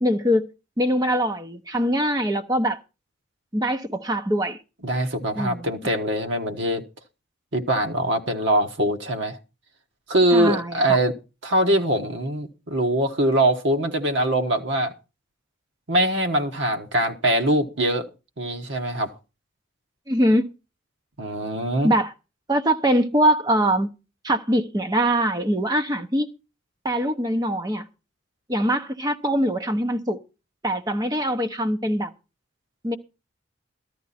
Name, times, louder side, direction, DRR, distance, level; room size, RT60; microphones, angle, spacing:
voice 1, 0.0-0.5 0.8-2.8 3.5-4.6 5.4-5.7 10.3-11.0 20.1-20.4 21.8-22.1 22.5-23.9 24.2-26.3 26.8-27.9 28.5-30.2 30.6-32.1 32.8-33.0, equal, 20° right, 0.9 m, -23 dB
voice 2, 4.8-6.8 7.5-9.4 10.1-11.1 11.4-14.9 15.9-18.1 18.4-19.1 21.2-21.9, right 1 dB, 65° right, 1.4 m, -22 dB
13.5 x 11.5 x 4.2 m
head